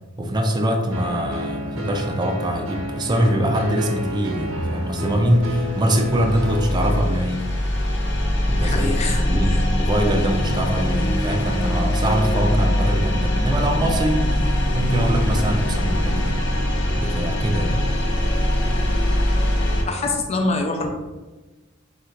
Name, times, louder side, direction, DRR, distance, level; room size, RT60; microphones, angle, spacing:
voice 1, 0.2-7.5 8.5-16.4 17.0-17.8, right 1 dB, 20° right, 3 dB, 0.4 m, -23 dB
sound 1, 0.9-7.0, equal, 75° right, 0.7 m, -30 dB
sound 2, 4.9-19.8, left 1 dB, 60° left, 0.7 m, -22 dB
voice 2, 8.6-9.6 12.5-12.7 19.8-20.9, left 3 dB, 30° left, 3 dB, 0.5 m, -25 dB
3.9 x 2.4 x 4.5 m, 1.2 s
head